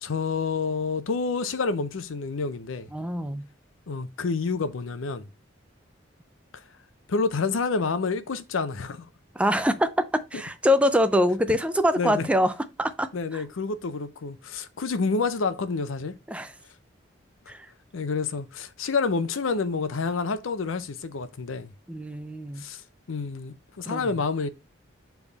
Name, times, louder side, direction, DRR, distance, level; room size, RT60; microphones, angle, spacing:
voice 1, 0.0-2.9 3.9-5.3 7.1-9.1 12.0-12.3 13.1-16.1 17.9-21.7 22.6-22.8 23.1-24.5, left 4 dB, 90° left, 0.6 m, -28 dB
voice 2, 2.9-3.5 9.3-12.5 12.8-13.4 16.3-16.5 17.5-17.7 21.9-22.7 23.9-24.1, equal, 5° right, 0.4 m, -24 dB
7.0 x 3.5 x 4.0 m
head